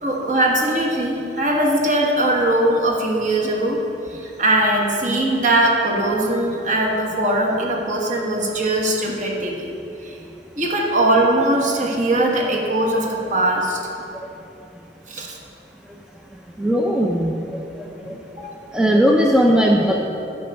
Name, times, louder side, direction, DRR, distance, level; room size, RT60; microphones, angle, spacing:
voice 1, 0.0-3.8 4.1-9.7 10.0-10.1 10.6-13.8 15.1-15.4 18.3-18.5, right 1 dB, 45° right, -1 dB, 1.4 m, -20 dB
voice 2, 16.6-17.6 18.1-18.2 18.7-20.0, equal, 5° right, 0 dB, 0.5 m, -18 dB
9.6 x 5.2 x 6.9 m, 2.8 s
head